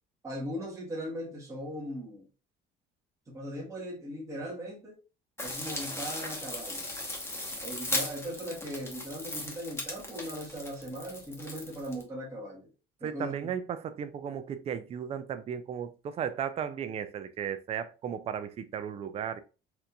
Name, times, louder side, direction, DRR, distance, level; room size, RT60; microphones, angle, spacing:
voice 1, 0.2-2.3 3.3-4.9 5.4-6.9 7.6-12.7 13.0-13.3, equal, 15° right, 1.0 m, -39 dB
sound 1, 5.4-12.0, left 2 dB, 10° left, 0.9 m, -37 dB
voice 2, 13.0-19.4, right 8 dB, 30° right, 0.4 m, -35 dB
4.3 x 2.6 x 2.2 m
cardioid pair, 130°, 20 cm